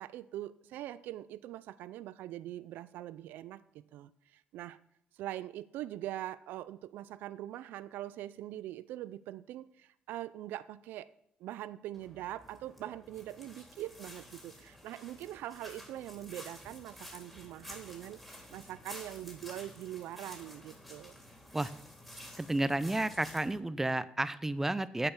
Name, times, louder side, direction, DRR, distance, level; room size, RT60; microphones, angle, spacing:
voice 1, 0.0-4.8 5.1-11.1 11.4-18.2 18.5-21.1, right 13 dB, 85° right, 16 dB, 0.4 m, -43 dB
sound 1, 11.9-23.6, left 1 dB, 5° left, 3.4 m, -51 dB
voice 2, 22.4-25.1, right 2 dB, 10° right, 15 dB, 0.6 m, -31 dB
8.6 x 6.8 x 5.9 m, 0.75 s
cardioid pair, 95°, 3 cm